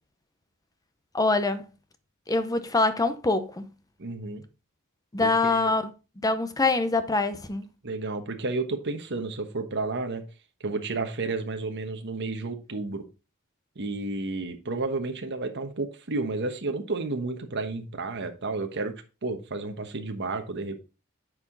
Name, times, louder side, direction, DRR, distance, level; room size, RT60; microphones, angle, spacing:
voice 1, 1.1-1.7 2.3-3.7 5.1-5.8 6.2-7.7, left 3 dB, 15° left, 0.7 m, -24 dB
voice 2, 4.0-4.4 5.2-5.7 7.8-10.2 10.6-13.0 13.8-18.9 19.2-20.8, right 3 dB, 55° right, 1.2 m, -31 dB
9.5 x 4.9 x 3.9 m
head